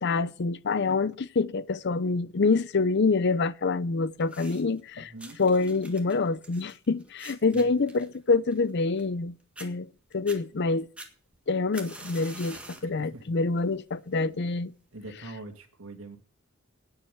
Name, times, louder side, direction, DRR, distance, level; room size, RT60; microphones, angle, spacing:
voice 1, 0.0-5.1 5.4-9.3 9.6-9.9 10.1-10.9 11.5-14.7, left 4 dB, 55° left, 0.6 m, -26 dB
sound 1, 4.2-4.8 5.2-9.2 9.6-9.7 10.1-10.4 11.0-12.9 13.4-13.7 14.5-14.6, right 2 dB, 5° right, 1.7 m, -46 dB
voice 2, 4.9-5.4 7.5-7.6 12.8-13.3 14.9-16.2, right 2 dB, 80° right, 2.4 m, -43 dB
9.7 x 7.4 x 9.3 m
head